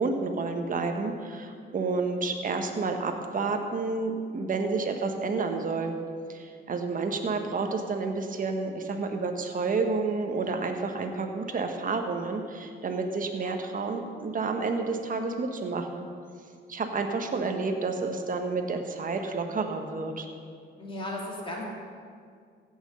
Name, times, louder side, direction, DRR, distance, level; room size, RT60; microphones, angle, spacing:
voice 1, 0.0-6.0 6.3-16.1 16.7-20.3, right 4 dB, 45° right, 4 dB, 1.4 m, -30 dB
voice 2, 20.8-21.6, left 1 dB, 25° left, -3 dB, 2.8 m, -35 dB
15.5 x 6.3 x 6.5 m, 2.1 s
cardioid pair, 90°, 20 cm